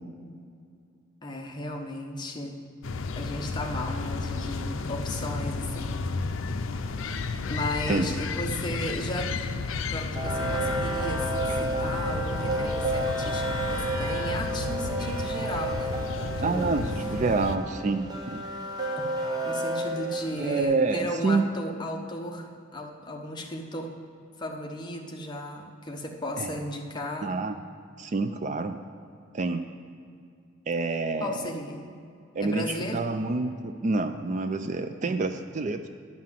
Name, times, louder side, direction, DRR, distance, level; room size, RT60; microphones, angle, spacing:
voice 1, 1.2-2.6 3.1-6.0 6.4-6.8 7.4-9.4 9.9-16.8 19.4-23.9 24.4-27.3 31.2-31.9 32.4-33.0 35.0-35.3, left 1 dB, 20° left, 1 dB, 0.9 m, -35 dB
sound 1, 2.8-17.6, left 4 dB, 75° left, 0.5 m, -32 dB
sound 2, 3.7-16.1, right 2 dB, 80° right, 2.3 m, -48 dB
sound 3, 10.1-20.6, right 1 dB, 20° right, 1.0 m, -31 dB
voice 2, 16.4-18.4 20.4-21.4 26.4-26.6 27.2-27.6 28.0-28.8 29.3-29.7 30.7-31.3 32.4-35.9, right 3 dB, 35° right, 8 dB, 0.3 m, -27 dB
11.0 x 5.8 x 7.4 m, 2.3 s
head